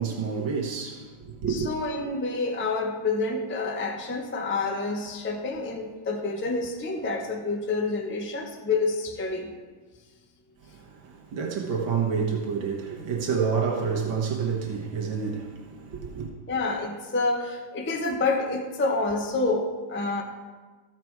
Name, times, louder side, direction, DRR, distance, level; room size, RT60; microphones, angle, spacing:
voice 1, 0.0-1.7 10.6-16.3, right 6 dB, 85° right, 2.0 m, -29 dB
voice 2, 1.5-9.5 16.5-20.2, left 3 dB, 15° left, 0.4 m, -28 dB
14.0 x 6.0 x 4.6 m
omnidirectional pair, 2.0 m